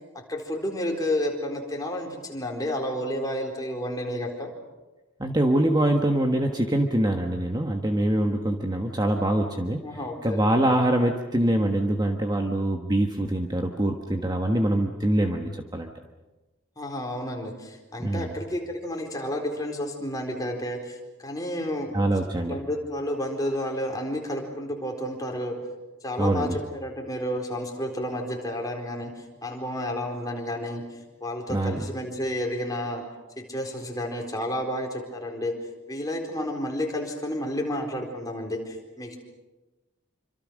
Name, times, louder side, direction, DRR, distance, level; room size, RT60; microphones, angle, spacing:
voice 1, 0.3-4.5 9.8-10.4 16.8-21.0 21.2-21.9 22.4-25.6 26.0-29.1 29.4-30.8 31.2-33.0 33.4-35.5 35.9-39.2, left 1 dB, 15° left, 1 dB, 4.3 m, -31 dB
voice 2, 5.2-9.8 10.2-15.9 18.0-18.3 21.9-22.6 26.2-26.6 31.5-31.9, right 1 dB, 20° right, 3 dB, 1.4 m, -24 dB
27.5 x 26.0 x 6.5 m, 1.2 s
head